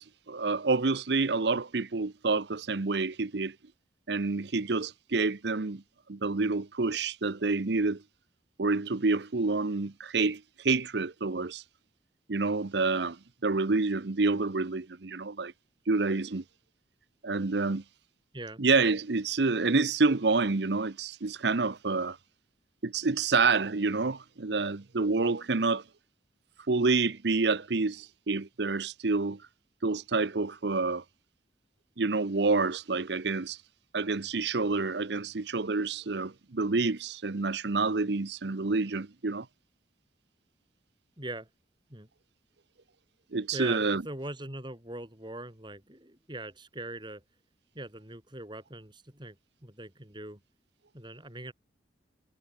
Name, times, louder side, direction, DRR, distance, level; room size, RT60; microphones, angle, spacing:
voice 1, 0.0-3.5 4.1-5.8 6.1-8.0 8.6-11.6 12.3-15.5 15.9-16.4 17.2-17.8 18.6-22.2 22.8-25.8 26.7-29.5 29.8-31.0 32.0-33.6 33.9-39.5 43.3-44.0, right 3 dB, 65° right, 0.8 m, -28 dB
voice 2, 41.2-41.5 41.9-42.1 43.5-47.2 47.7-50.4 50.9-51.5, right 1 dB, 25° right, 6.6 m, -41 dB
head